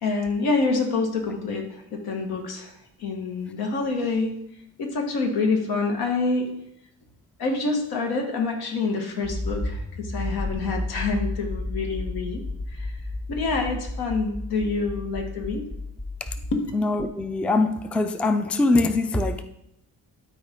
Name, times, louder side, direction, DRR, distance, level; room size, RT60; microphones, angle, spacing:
voice 1, 0.0-2.7 3.0-4.3 4.8-6.5 7.4-12.4 12.7-12.9 13.3-15.6 16.5-16.6, left 3 dB, 80° left, 3 dB, 1.6 m, -26 dB
Accelerating revving vroom, 9.2-16.5, left 1 dB, 20° left, 0.9 m, -32 dB
voice 2, 16.7-19.4, left 2 dB, 5° left, 9 dB, 0.3 m, -23 dB
12.0 x 4.4 x 3.6 m, 0.79 s
cardioid pair, 115°, 37 cm